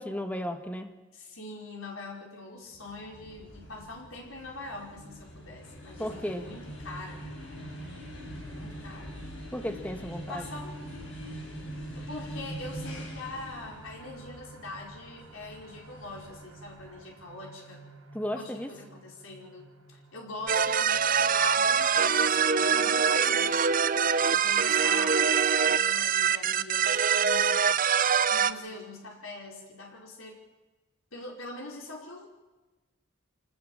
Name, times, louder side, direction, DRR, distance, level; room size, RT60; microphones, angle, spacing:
voice 1, 0.0-1.0 6.0-6.4 9.5-10.4 18.1-18.7, equal, 5° left, 7 dB, 1.4 m, -34 dB
voice 2, 1.1-7.2 8.5-9.2 10.3-10.8 12.0-17.8 18.3-23.7 24.2-27.8 28.3-30.4 31.1-32.3, left 2 dB, 80° left, -1 dB, 5.2 m, -43 dB
sound 1, 2.7-17.2, equal, 60° left, 7.6 m, -43 dB
sound 2, 13.7-27.2 27.6-27.7 28.1-28.2, right 2 dB, 90° right, 5.5 m, -55 dB
sound 3, 20.5-28.5, right 7 dB, 40° right, 0.7 m, -24 dB
25.5 x 19.0 x 7.4 m, 1.1 s
head